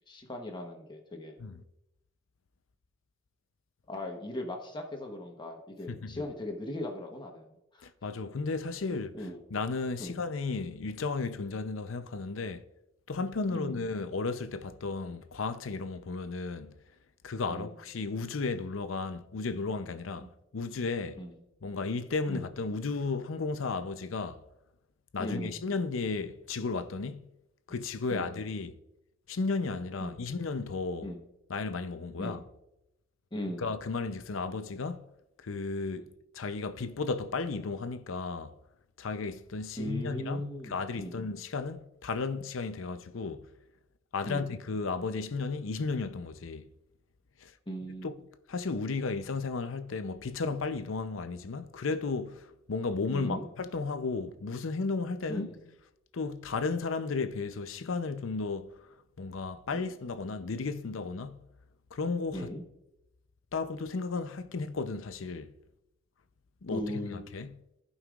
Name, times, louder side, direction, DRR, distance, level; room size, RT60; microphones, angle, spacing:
voice 1, 0.1-1.4 3.9-7.9 8.9-9.4 10.0-10.2 13.5-13.8 17.5-17.8 20.2-20.3 21.2-21.4 22.3-22.5 25.2-25.6 28.1-28.3 30.0-30.1 31.0-31.2 32.2-32.4 33.3-33.7 39.8-41.2 44.2-44.6 47.7-48.1 53.1-53.5 55.3-55.6 59.7-59.8 62.3-62.6 66.7-67.3, left 1 dB, 25° left, 1.0 m, -38 dB
voice 2, 5.9-6.2 7.8-9.2 9.5-12.6 13.1-16.7 17.2-20.3 20.5-21.2 21.6-24.4 25.1-27.2 27.7-28.8 29.3-31.1 31.5-32.4 33.6-35.0 35.4-36.1 36.3-38.5 39.0-43.5 44.1-46.7 47.4-47.5 48.0-48.1 48.5-55.5 56.1-58.7 59.2-61.4 61.9-62.5 63.5-65.5 66.6-66.8 67.1-67.5, left 4 dB, 85° left, 0.6 m, -34 dB
15.5 x 5.5 x 2.4 m
head